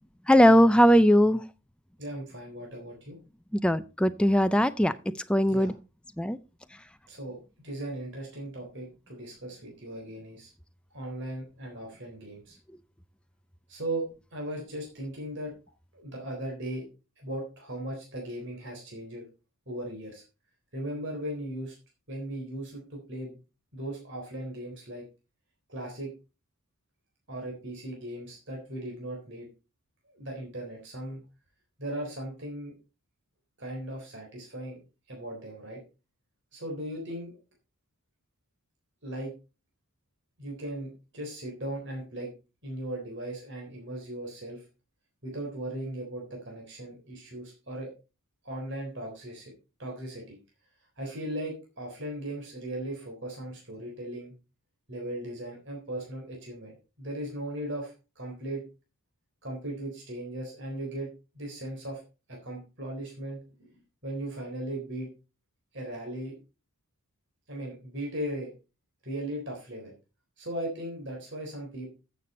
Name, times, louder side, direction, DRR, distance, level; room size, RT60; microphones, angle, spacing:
voice 1, 0.3-1.4 3.5-4.9 5.3-5.7 6.2-6.4, equal, 5° left, 0.4 m, -20 dB
voice 2, 2.0-3.2 5.5-5.7 7.1-7.4 7.6-10.5 10.9-12.6 13.7-14.0 14.3-15.5 15.9-16.8 17.2-19.2 19.7-20.2 20.7-21.7 22.1-23.4 23.7-25.0 25.7-26.1 27.3-29.5 30.1-31.2 31.8-32.7 33.6-34.8 35.1-35.8 36.5-37.4 39.0-39.3 40.4-42.3 42.6-44.6 45.2-47.9 48.4-49.5 49.8-50.4 51.0-54.3 54.9-58.6 59.4-61.1 61.3-62.0 62.3-65.1 65.7-66.4 67.5-68.5 69.0-69.9 70.4-71.9, right 1 dB, 55° right, 3.8 m, -37 dB
13.5 x 6.9 x 4.2 m
head